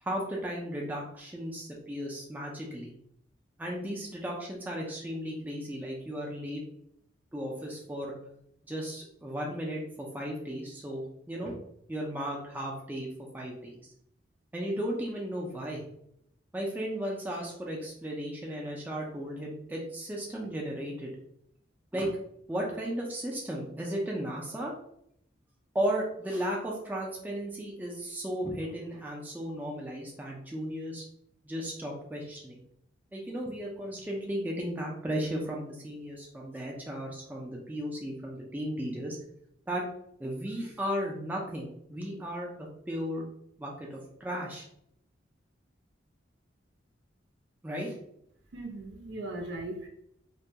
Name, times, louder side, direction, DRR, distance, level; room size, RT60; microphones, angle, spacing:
voice 1, 0.0-2.9 3.6-6.6 7.3-8.1 8.7-11.6 11.9-13.1 13.3-13.7 14.5-15.8 16.5-21.1 21.9-22.2 22.5-24.7 25.7-31.0 31.5-32.6 33.1-39.2 39.7-39.8 40.2-43.3 43.6-44.7 47.6-47.9, equal, 10° right, -2 dB, 0.3 m, -35 dB
voice 2, 48.5-49.9, right 2 dB, 70° right, 2 dB, 0.5 m, -38 dB
2.2 x 2.1 x 2.7 m, 0.73 s
head